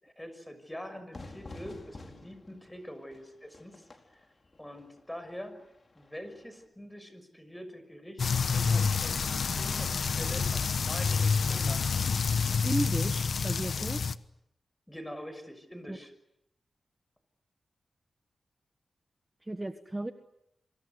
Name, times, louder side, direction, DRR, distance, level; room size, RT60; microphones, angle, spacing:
voice 1, 0.0-3.9 4.6-5.5 5.9-8.2 8.5-9.2 9.6-12.0 14.9-16.1, equal, 10° left, 10 dB, 6.1 m, -44 dB
Fire / Fireworks, 1.1-6.7, left 2 dB, 40° left, 4.6 m, -50 dB
sound 1, 8.2-14.1, left 5 dB, 70° left, 1.0 m, -28 dB
voice 2, 12.6-14.0 15.9-16.0 19.4-20.1, right 1 dB, 20° right, 8 dB, 1.5 m, -34 dB
28.0 x 25.0 x 8.2 m, 0.80 s
wide cardioid pair, 85°, 0 cm